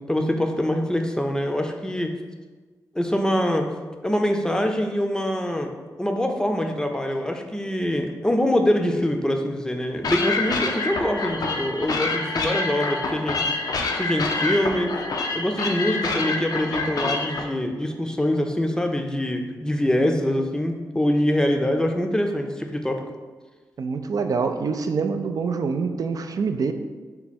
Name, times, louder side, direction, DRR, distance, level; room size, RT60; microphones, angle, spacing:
voice 1, 0.0-2.1 2.9-3.7 4.0-5.7 6.0-14.9 15.3-23.0, left 1 dB, 10° left, 4 dB, 0.5 m, -24 dB
sound 1, 10.0-17.4, left 3 dB, 65° left, 0.5 m, -27 dB
voice 2, 23.8-26.7, right 5 dB, 60° right, 7 dB, 0.4 m, -25 dB
4.6 x 2.2 x 4.2 m, 1.4 s
cardioid pair, 55°, 7 cm